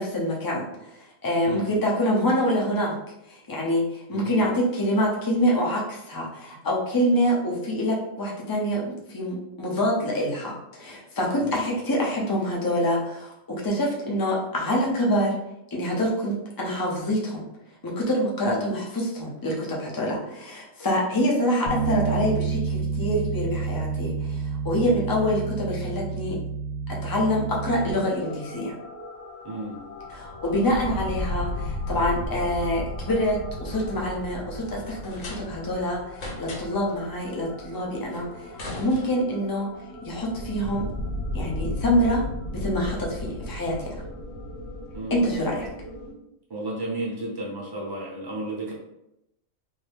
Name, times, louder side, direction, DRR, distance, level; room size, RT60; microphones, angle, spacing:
voice 1, 0.0-2.9 3.3-15.3 15.7-17.4 17.8-26.3 27.0-28.7 30.1-39.7 40.0-40.8 41.3-42.2 42.5-43.9 45.1-45.7, equal, 30° left, -3 dB, 0.4 m, -26 dB
voice 2, 1.4-1.8 4.1-4.5 11.4-11.6 18.4-18.6 24.8-25.0 29.4-29.8 44.9-45.3 46.5-48.7, right 1 dB, 20° right, -4 dB, 0.8 m, -33 dB
Bass guitar, 21.7-27.9, right 5 dB, 70° right, 0.9 m, -29 dB
sound 1, 27.5-46.1, left 1 dB, 90° left, 1.1 m, -35 dB
sound 2, 34.9-35.8 36.1-36.9 38.1-39.5, left 2 dB, 60° left, 1.1 m, -39 dB
2.7 x 2.6 x 3.4 m, 0.83 s
omnidirectional pair, 1.4 m